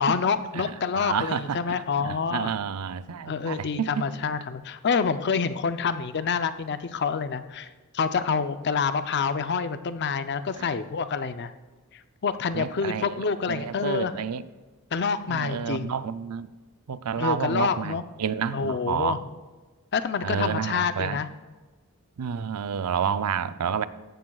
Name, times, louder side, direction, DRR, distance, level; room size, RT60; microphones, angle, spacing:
voice 1, 0.0-2.5 3.3-7.7 7.9-11.5 12.2-14.1 14.9-15.9 17.2-18.0 18.5-19.2 19.9-21.3, left 5 dB, 50° left, 11 dB, 0.5 m, -27 dB
voice 2, 0.5-4.1 10.6-10.7 12.5-14.4 15.3-16.5 16.9-19.2 20.2-21.2 22.2-23.8, right 7 dB, 90° right, 14 dB, 0.5 m, -30 dB
16.0 x 12.0 x 2.3 m, 1.3 s
head